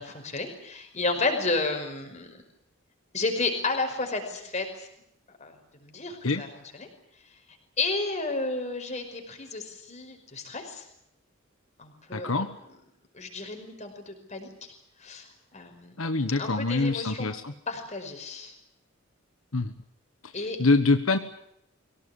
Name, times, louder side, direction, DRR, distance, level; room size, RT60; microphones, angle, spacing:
voice 1, 0.0-2.4 3.1-4.9 5.4-6.9 7.8-10.9 11.8-12.7 13.1-14.7 15.0-15.3 15.5-17.3 17.7-18.5 20.3-20.6, left 3 dB, 35° left, 4 dB, 5.3 m, -32 dB
voice 2, 12.1-12.5 16.0-17.5 19.5-19.7 20.6-21.2, left 3 dB, 80° left, 8 dB, 1.4 m, -24 dB
24.0 x 17.5 x 10.0 m, 0.78 s
head